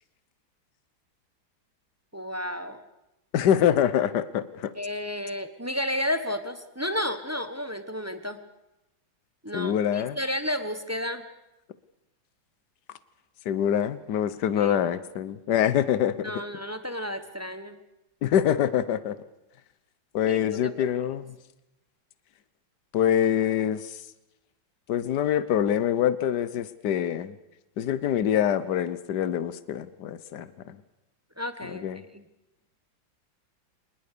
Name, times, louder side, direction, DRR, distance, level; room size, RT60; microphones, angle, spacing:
voice 1, 2.1-2.8 4.7-8.4 9.4-11.2 14.6-14.8 16.2-17.8 20.2-20.7 31.4-31.9 32.1-32.2, left 1 dB, 10° right, 9 dB, 0.9 m, -32 dB
voice 2, 3.3-4.7 9.5-10.2 13.4-16.3 18.2-19.2 20.1-21.3 22.9-24.0 24.9-27.3 27.8-30.8 31.7-32.0, left 10 dB, 60° left, 15 dB, 1.5 m, -25 dB
24.5 x 20.5 x 6.8 m, 0.93 s
omnidirectional pair, 2.2 m